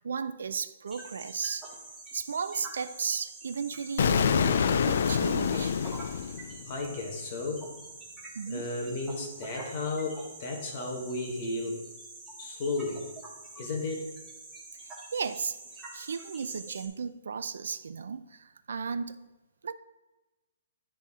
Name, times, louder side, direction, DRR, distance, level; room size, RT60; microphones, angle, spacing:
voice 1, 0.0-1.7 2.1-5.8 8.4-8.7 14.8-15.6 15.9-19.3 19.6-19.7, right 5 dB, 90° right, 0.4 m, -35 dB
sound 1, 0.9-16.9, right 2 dB, 10° right, 0.9 m, -46 dB
Explosion, 4.0-6.9, left 7 dB, 55° left, 0.3 m, -26 dB
voice 2, 6.6-7.7 8.5-11.8 12.4-13.1 13.6-14.1, left 3 dB, 30° left, 1.2 m, -34 dB
9.9 x 4.2 x 3.6 m
hypercardioid pair, 175°, 0 cm